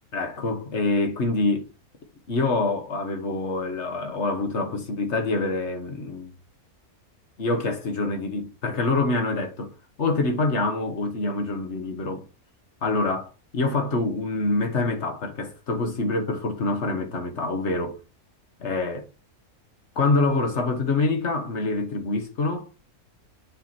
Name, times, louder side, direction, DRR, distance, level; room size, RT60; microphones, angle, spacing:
voice 1, 0.1-1.7 2.3-6.4 7.4-9.7 10.0-12.2 12.8-18.0 18.6-19.1 19.9-22.7, left 3 dB, 50° left, 1.7 m, -26 dB
7.0 x 4.7 x 4.3 m
omnidirectional pair, 1.5 m